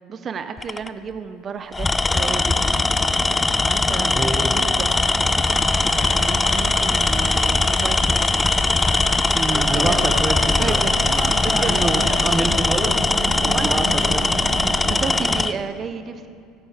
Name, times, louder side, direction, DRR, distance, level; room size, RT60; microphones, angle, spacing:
voice 1, 0.1-1.9 2.1-2.7 3.6-4.9 6.1-8.3 9.5-10.1 10.5-11.0 11.4-12.6 13.5-14.1 14.9-16.3, right 6 dB, 40° right, 10 dB, 0.6 m, -32 dB
Tools, 0.6-0.9 1.7-15.5, left 3 dB, 15° left, 0.3 m, -20 dB
sound 1, 2.1-15.4, right 5 dB, 55° right, 1.3 m, -34 dB
voice 2, 4.0-4.5 9.3-13.0 13.3-14.2, right 2 dB, 20° right, 2 dB, 1.0 m, -27 dB
sound 2, 5.4-12.3, left 6 dB, 85° left, 0.8 m, -36 dB
16.0 x 8.9 x 3.5 m, 2.4 s
hypercardioid pair, 80°, 0 cm